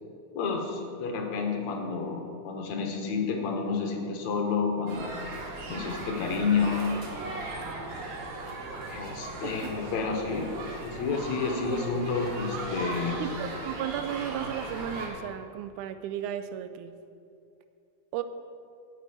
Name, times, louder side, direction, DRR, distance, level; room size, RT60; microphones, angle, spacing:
voice 1, 0.4-5.3 5.7-6.9 8.9-10.6 10.8-13.2, left 5 dB, 70° left, 2 dB, 2.3 m, -30 dB
sound 1, 4.9-15.1, right 2 dB, 65° right, 2.5 m, -38 dB
voice 2, 13.2-16.9 18.1-18.2, right 10 dB, 80° right, 11 dB, 2.0 m, -34 dB
10.0 x 6.0 x 8.6 m, 2.5 s
omnidirectional pair, 3.5 m